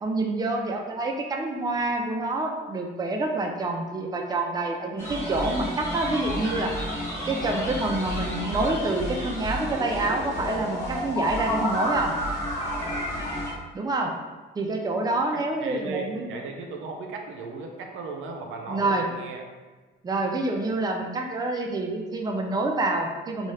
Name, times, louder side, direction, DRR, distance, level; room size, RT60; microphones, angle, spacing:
voice 1, 0.0-6.7 7.3-12.1 13.7-14.2 14.6-16.3 18.7-19.1 20.0-23.5, right 2 dB, 20° right, 2 dB, 0.4 m, -27 dB
sound 1, 5.0-13.5, equal, 15° left, 1.1 m, -30 dB
voice 2, 15.3-19.4, right 4 dB, 85° right, 2 dB, 0.5 m, -36 dB
2.9 x 2.3 x 3.2 m, 1.3 s
cardioid pair, 90°, 20 cm